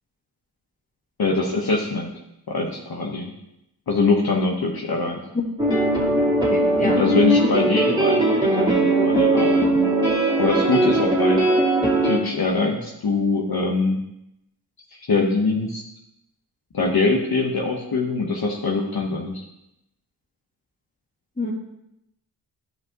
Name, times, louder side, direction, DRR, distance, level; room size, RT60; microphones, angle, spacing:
voice 1, 1.2-2.1 2.5-3.3 3.9-5.2 6.8-9.8 10.4-11.4 12.0-14.0 14.9-15.8 16.7-19.4, left 3 dB, 55° left, -1 dB, 1.2 m, -23 dB
sound 1, 5.6-12.2, right 1 dB, 10° right, 2.6 m, -19 dB
voice 2, 6.5-7.0 21.4-21.5, left 1 dB, 15° left, -1 dB, 2.3 m, -27 dB
10.5 x 5.4 x 3.0 m, 0.84 s
cardioid pair, 40°, 44 cm